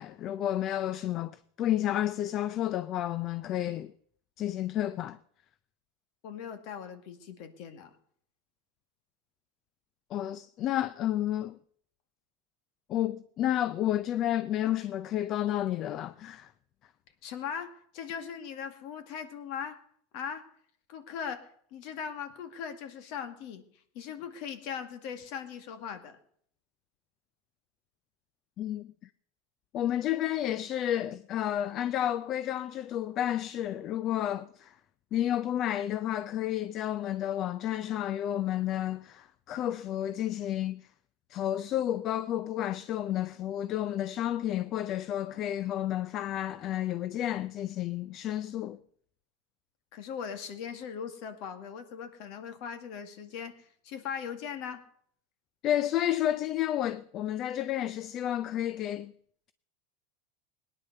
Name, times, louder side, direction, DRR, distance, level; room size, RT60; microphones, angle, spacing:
voice 1, 0.0-3.9 4.4-5.2 10.1-11.6 12.9-16.5 28.6-28.9 29.7-34.7 35.1-40.8 41.3-48.8 55.6-59.1, left 12 dB, 40° left, 0.5 m, -31 dB
voice 2, 6.2-7.9 17.2-19.8 20.1-20.4 20.9-21.4 21.7-23.6 23.9-26.2 49.9-54.8, left 7 dB, 55° left, 2.1 m, -39 dB
18.5 x 10.0 x 6.8 m
supercardioid pair, 135°, 0 cm